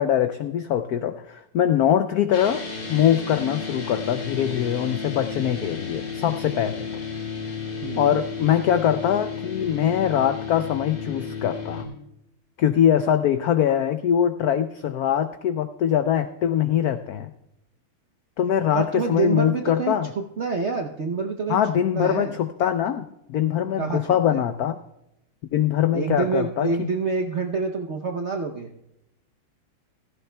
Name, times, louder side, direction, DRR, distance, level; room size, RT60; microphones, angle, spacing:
voice 1, 0.0-2.6 2.9-6.9 8.0-11.9 12.6-17.3 18.4-20.1 21.5-24.8 25.5-26.9, left 9 dB, 85° left, 10 dB, 0.8 m, -22 dB
sound 1, 2.3-11.8, left 5 dB, 55° left, 2.8 m, -33 dB
voice 2, 7.8-8.2 18.7-21.6 21.9-22.4 23.8-24.4 25.9-28.7, right 4 dB, 65° right, 3 dB, 0.7 m, -27 dB
16.0 x 14.5 x 2.2 m, 0.84 s
omnidirectional pair, 2.2 m